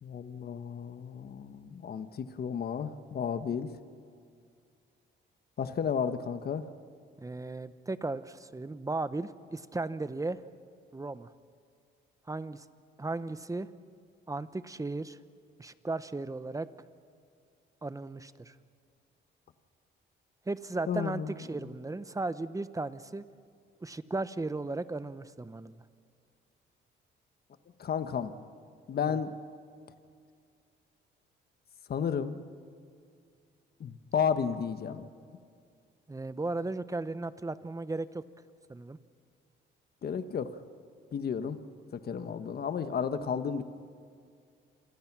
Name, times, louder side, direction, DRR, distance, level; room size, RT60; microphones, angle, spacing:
voice 1, 0.0-3.7 5.6-6.7 20.9-21.3 27.8-28.3 28.9-29.4 31.9-32.4 33.8-35.1 40.0-40.6 41.1-41.6 41.9-43.6, left 7 dB, 50° left, 10 dB, 1.3 m, -32 dB
voice 2, 7.2-10.4 10.9-11.3 12.3-12.6 13.0-13.7 14.3-15.2 15.6-16.7 17.8-18.5 20.5-23.2 23.8-25.8 29.1-29.2 36.1-38.2 38.7-39.0 42.1-42.4, right 2 dB, 15° right, 13 dB, 1.0 m, -36 dB
27.5 x 25.0 x 6.1 m, 2.2 s
cardioid pair, 90°, 20 cm